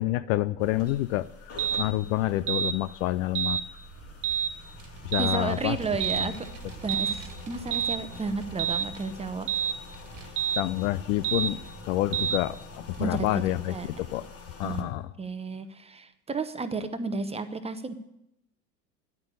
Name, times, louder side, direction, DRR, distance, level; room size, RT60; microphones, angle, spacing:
voice 1, 0.0-3.6 5.0-5.8 6.2-6.3 10.6-11.6 11.8-14.2 14.6-15.1, left 16 dB, 50° left, 16 dB, 0.6 m, -28 dB
sound 1, 0.6-14.8, left 4 dB, 30° left, 2.6 m, -47 dB
sound 2, 1.6-1.9 2.5-2.8 3.4-3.6 4.2-4.5 5.1-5.4 6.0-6.3 6.9-7.2 7.7-8.0 8.6-8.9 9.5-9.8 10.4-10.6 11.2-11.5 12.1-12.4, right 8 dB, 75° right, 1.0 m, -27 dB
Vehicle, 3.5-14.3, right 4 dB, 30° right, 1.9 m, -46 dB
voice 2, 5.2-6.3 6.8-7.2 7.5-9.5 10.2-10.3 13.0-13.4 13.7-13.9 14.6-14.9 15.2-17.9, right 3 dB, 15° right, 10 dB, 1.0 m, -32 dB
10.5 x 9.0 x 9.8 m, 0.84 s
hypercardioid pair, 90°, 48 cm